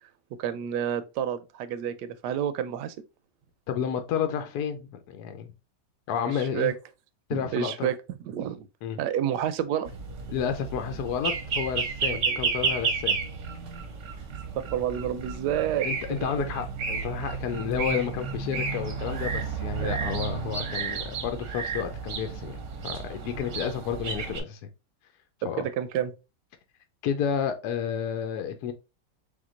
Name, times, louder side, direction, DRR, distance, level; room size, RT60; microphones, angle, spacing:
voice 1, 0.4-2.9 6.2-6.7 7.3-8.7 9.0-9.9 12.0-12.3 14.6-15.9 16.2-16.5 19.8-20.0 25.4-26.1, right 10 dB, 75° right, 1.1 m, -29 dB
voice 2, 3.7-5.5 6.1-6.7 7.3-7.9 8.8-9.0 10.3-13.2 15.8-22.6 22.8-24.6 25.4-25.6 27.0-28.7, left 8 dB, 70° left, 1.1 m, -31 dB
sound 1, 9.8-24.4, right 5 dB, 55° right, 0.9 m, -32 dB
3.6 x 2.9 x 3.7 m
omnidirectional pair, 1.9 m